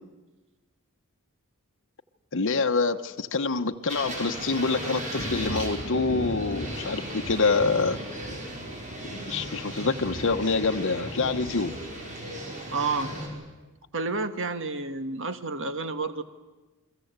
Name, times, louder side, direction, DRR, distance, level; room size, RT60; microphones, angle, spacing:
voice 1, 2.3-8.0 9.2-11.7, left 4 dB, 60° left, 6 dB, 1.1 m, -26 dB
sound 1, 3.9-13.3, right 1 dB, 35° right, 6.4 m, -37 dB
Thunder, 5.2-12.2, left 1 dB, 45° left, 3.2 m, -39 dB
voice 2, 12.7-13.1 13.9-16.2, right 3 dB, 60° right, 9 dB, 1.6 m, -30 dB
29.5 x 22.5 x 8.1 m, 1.2 s
head